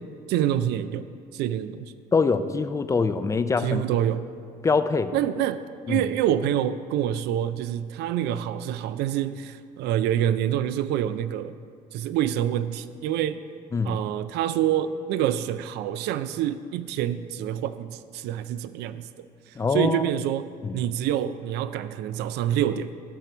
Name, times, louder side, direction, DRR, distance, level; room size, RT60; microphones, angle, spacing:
voice 1, 0.3-1.9 3.6-4.2 5.1-5.6 5.9-11.6 11.9-13.4 13.8-20.5 20.7-23.0, right 11 dB, 80° right, 13 dB, 0.4 m, -27 dB
voice 2, 2.1-3.8 4.6-5.1 5.9-6.0 13.7-14.0 19.6-20.0 20.6-20.8, left 4 dB, 20° left, 11 dB, 0.4 m, -24 dB
13.0 x 4.5 x 6.1 m, 2.2 s
cardioid pair, 110°, 17 cm